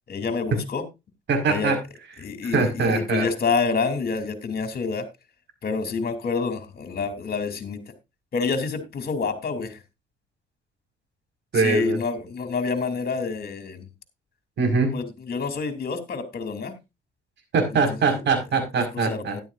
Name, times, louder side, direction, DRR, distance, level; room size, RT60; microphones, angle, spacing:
voice 1, 0.1-0.8 1.4-1.8 2.2-5.0 5.6-7.8 8.3-9.8 11.5-13.8 14.9-16.7 18.9-19.4, left 4 dB, 50° left, 8 dB, 2.8 m, -27 dB
voice 2, 1.3-1.8 2.4-3.3 11.5-12.0 14.6-14.9 17.5-19.4, right 4 dB, 65° right, 4 dB, 4.9 m, -22 dB
12.5 x 11.0 x 2.5 m, 0.24 s
cardioid pair, 90°, 20 cm